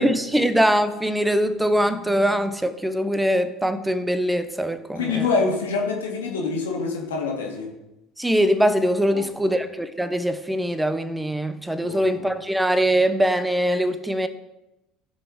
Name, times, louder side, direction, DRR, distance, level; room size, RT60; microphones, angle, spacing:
voice 1, 0.0-5.3 8.2-14.3, equal, 5° right, 1.0 m, -22 dB
voice 2, 5.0-7.7 9.1-9.5 11.8-12.3, left 4 dB, 70° left, 2.1 m, -26 dB
15.0 x 6.2 x 4.9 m
figure-of-eight pair, 65°, 0 cm